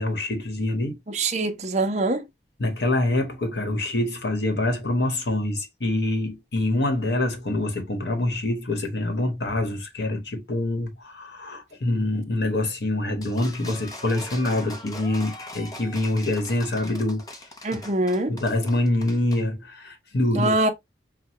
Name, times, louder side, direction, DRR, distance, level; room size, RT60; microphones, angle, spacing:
voice 1, 0.0-1.0 2.6-17.2 18.3-20.5, left 2 dB, 70° left, 1.2 m, -25 dB
voice 2, 1.1-2.3 17.6-18.3 20.3-20.7, right 2 dB, 40° right, 0.7 m, -24 dB
sound 1, 13.2-19.4, left 1 dB, 20° left, 0.7 m, -41 dB
5.9 x 2.2 x 2.9 m
head